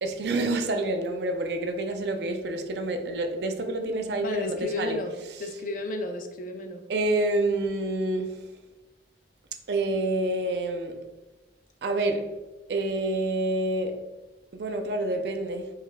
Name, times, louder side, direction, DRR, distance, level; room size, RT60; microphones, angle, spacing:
voice 1, 0.0-5.0 6.9-8.4 9.7-11.0 11.8-12.3 12.7-14.0 14.5-15.7, right 2 dB, 65° right, 0.4 m, -28 dB
voice 2, 4.2-6.8, left 2 dB, 45° left, 0.4 m, -32 dB
4.6 x 3.4 x 2.2 m
head